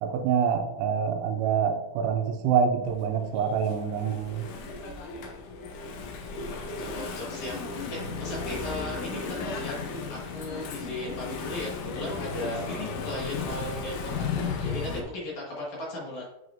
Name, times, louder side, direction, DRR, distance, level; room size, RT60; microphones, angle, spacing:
voice 1, 0.0-4.4, right 7 dB, 80° right, 6 dB, 2.7 m, -26 dB
Engine / Mechanisms, 2.9-15.0, left 4 dB, 80° left, 1.8 m, -35 dB
voice 2, 6.5-16.3, left 1 dB, 50° left, -5 dB, 2.9 m, -37 dB
8.2 x 6.4 x 2.6 m, 0.88 s
omnidirectional pair, 4.7 m